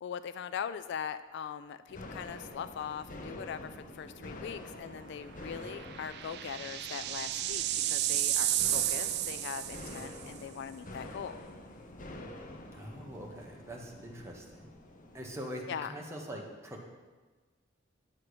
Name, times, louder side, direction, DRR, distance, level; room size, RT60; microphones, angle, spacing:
voice 1, 0.0-11.4 15.7-15.9, left 8 dB, 60° left, 12 dB, 0.3 m, -41 dB
sound 1, 1.9-15.3, left 1 dB, 40° left, 0.8 m, -47 dB
sound 2, 3.3-3.7 4.0-4.1 5.6-10.2, right 13 dB, 55° right, 0.4 m, -32 dB
voice 2, 12.7-14.8 15.1-16.8, equal, 15° right, -1 dB, 1.2 m, -43 dB
9.8 x 6.1 x 4.9 m, 1.3 s
head